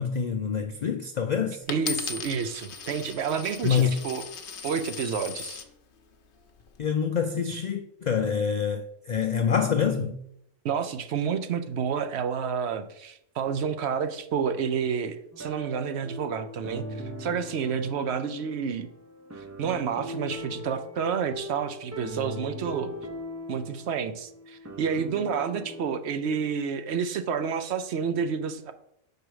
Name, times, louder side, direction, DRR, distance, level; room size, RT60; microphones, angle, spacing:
voice 1, 0.0-1.6 3.6-4.0 6.8-10.2, left 7 dB, 75° left, 0.4 m, -26 dB
Coin (dropping), 1.7-5.7 6.4-6.8, left 6 dB, 50° left, 0.8 m, -37 dB
voice 2, 1.7-4.2 4.6-5.6 10.6-16.9 17.2-18.9 19.4-22.9 23.5-28.7, right 6 dB, 65° right, 0.8 m, -29 dB
sound 1, 15.3-26.0, equal, 25° right, 0.4 m, -40 dB
6.1 x 4.8 x 4.7 m
omnidirectional pair, 1.3 m